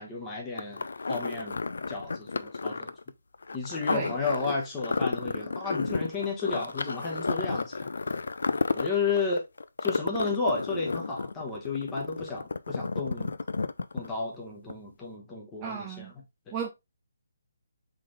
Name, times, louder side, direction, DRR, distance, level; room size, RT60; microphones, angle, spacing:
voice 1, 0.0-2.9 3.5-7.9 8.5-9.4 9.8-13.3 13.9-16.1 16.5-16.6, left 4 dB, 10° left, 0.9 m, -33 dB
sound 1, 0.6-14.4 14.7-14.8, left 4 dB, 80° left, 0.3 m, -32 dB
voice 2, 15.6-16.1 16.5-16.7, right 7 dB, 15° right, 0.4 m, -34 dB
3.8 x 3.7 x 3.1 m
hypercardioid pair, 175°, 0 cm